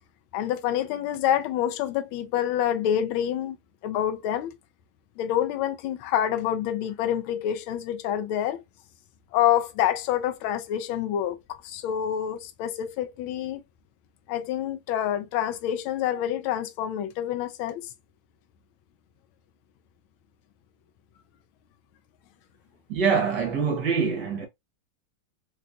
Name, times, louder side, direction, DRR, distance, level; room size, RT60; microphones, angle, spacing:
voice 1, 0.3-3.6 3.8-4.5 5.2-8.6 9.3-13.6 14.3-17.9, left 10 dB, 80° left, 1.4 m, -27 dB
voice 2, 22.9-24.5, right 5 dB, 60° right, 1.3 m, -24 dB
4.0 x 2.3 x 2.5 m
omnidirectional pair, 2.4 m